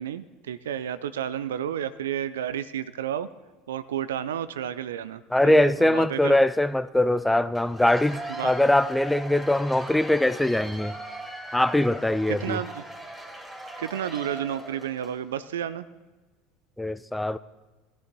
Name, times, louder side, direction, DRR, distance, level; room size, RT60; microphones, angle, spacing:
voice 1, 0.0-3.3 3.7-6.4 8.3-8.5 12.3-12.8 13.8-15.9, right 10 dB, 70° right, 0.4 m, -31 dB
voice 2, 5.3-11.0 11.5-12.6 16.8-17.4, left 1 dB, 5° left, 0.3 m, -22 dB
Cheering / Applause / Crowd, 7.5-15.2, right 1 dB, 10° right, 2.0 m, -39 dB
17.5 x 12.0 x 2.2 m
figure-of-eight pair, 70°, 0 cm